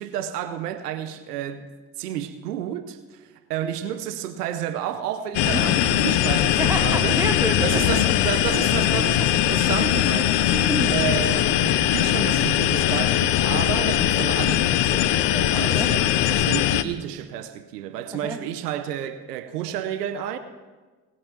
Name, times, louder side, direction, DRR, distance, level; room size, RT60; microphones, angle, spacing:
voice 1, 0.0-1.7 2.0-7.2 7.6-10.4 10.9-20.4, right 10 dB, 90° right, 0.9 m, -30 dB
sound 1, 5.3-16.8, left 13 dB, 65° left, 0.9 m, -21 dB
voice 2, 6.6-8.1 10.5-10.9 15.6-15.9 18.1-18.4, right 1 dB, 5° right, 2.4 m, -28 dB
19.5 x 8.4 x 6.0 m
hypercardioid pair, 55°, 46 cm